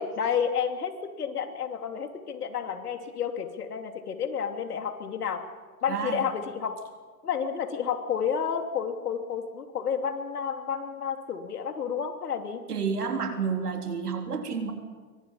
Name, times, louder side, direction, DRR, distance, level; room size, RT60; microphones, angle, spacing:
voice 1, 0.0-5.4 5.8-6.8 7.2-12.6, left 7 dB, 80° left, 6 dB, 3.1 m, -30 dB
voice 2, 5.9-6.3 12.7-14.7, right 5 dB, 90° right, 4 dB, 3.9 m, -30 dB
26.5 x 24.0 x 5.7 m, 1.4 s
hypercardioid pair, 125°, 45 cm